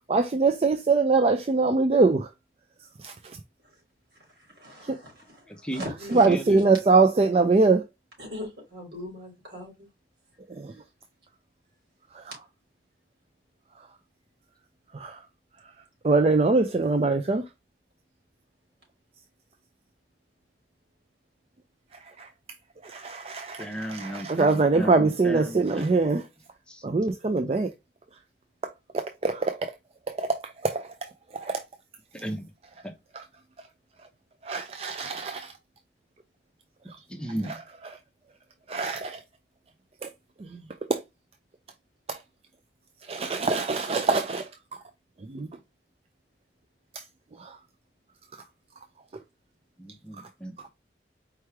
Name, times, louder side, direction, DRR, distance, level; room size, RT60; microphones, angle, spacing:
voice 1, 0.1-2.3 3.0-3.4 6.1-7.9 10.5-10.7 12.1-12.2 14.9-15.2 16.0-17.4 22.2-22.3 22.8-26.3 26.8-27.7 28.9-29.7 30.1-31.6 33.1-33.2 34.4-35.5 36.9-37.0 37.4-38.0 38.7-39.2 40.0-40.1 40.4-40.6 40.9-41.0 42.1-42.2 43.1-44.5 45.2-45.5 47.4-47.6, right 3 dB, 35° right, 0.4 m, -24 dB
voice 2, 4.6-6.6 8.2-9.9, left 1 dB, 80° right, 3.3 m, -40 dB
voice 3, 6.1-6.7 23.6-25.9 26.7-26.8 32.1-32.5 37.1-37.5 49.8-50.7, right 1 dB, 5° left, 0.7 m, -34 dB
4.7 x 3.1 x 3.3 m
head